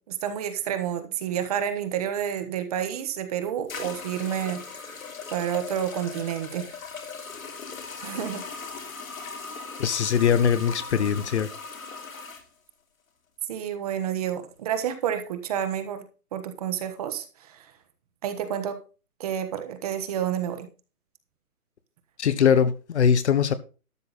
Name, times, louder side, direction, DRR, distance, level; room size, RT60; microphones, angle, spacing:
voice 1, 0.0-5.0 5.3-6.7 8.0-8.4 13.5-16.1 16.3-17.7 18.2-18.8 19.2-20.7, right 9 dB, 25° right, 1.3 m, -30 dB
sound 1, 2.9-3.0 3.7-12.4, left 5 dB, 65° left, 3.2 m, -39 dB
voice 2, 9.8-11.5 22.2-23.5, left 7 dB, 50° left, 1.3 m, -21 dB
12.5 x 7.9 x 4.1 m
hypercardioid pair, 155°, 45 cm